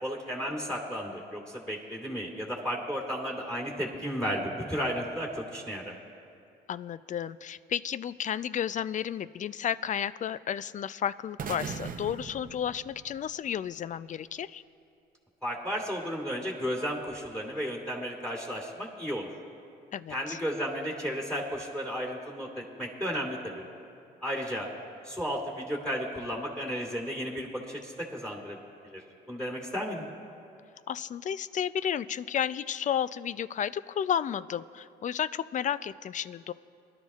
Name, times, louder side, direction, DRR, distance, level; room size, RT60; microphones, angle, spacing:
voice 1, 0.0-5.9 15.4-19.3 20.1-23.6 24.2-24.7 25.0-28.6 28.8-29.0 29.3-30.1, equal, 5° left, -2 dB, 2.6 m, -33 dB
voice 2, 6.7-14.6 19.9-20.4 30.9-36.5, left 9 dB, 40° left, 16 dB, 0.4 m, -32 dB
sound 1, 11.4-13.5, right 6 dB, 50° right, 0.8 m, -39 dB
22.0 x 12.0 x 2.4 m, 2.5 s
supercardioid pair, 65°, 19 cm